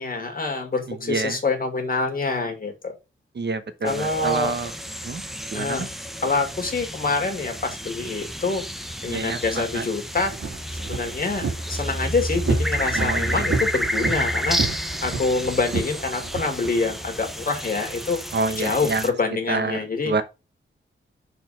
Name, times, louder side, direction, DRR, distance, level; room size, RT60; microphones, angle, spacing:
voice 1, 0.0-2.9 3.8-4.5 5.5-5.9 6.2-8.6 9.0-10.3 10.8-18.2 18.6-20.1, left 3 dB, 45° left, 2.3 m, -26 dB
voice 2, 0.9-1.4 3.3-4.7 5.0-5.2 5.5-5.9 9.1-9.9 12.9-13.5 18.3-19.1 19.5-20.2, right 3 dB, 55° right, 1.1 m, -28 dB
sound 1, 3.9-19.1, equal, ahead, 0.8 m, -30 dB
sound 2, 10.1-16.7, right 4 dB, 90° right, 2.5 m, -30 dB
6.5 x 4.3 x 4.9 m
wide cardioid pair, 135°, 21 cm